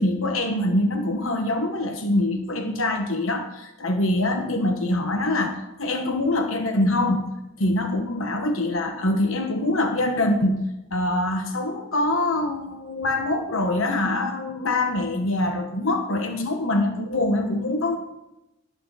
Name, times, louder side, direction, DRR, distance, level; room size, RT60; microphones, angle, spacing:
voice 1, 0.0-7.3 7.6-10.6 10.9-18.0, left 1 dB, 70° left, 4 dB, 1.2 m, -24 dB
18.5 x 8.8 x 4.1 m, 0.93 s
head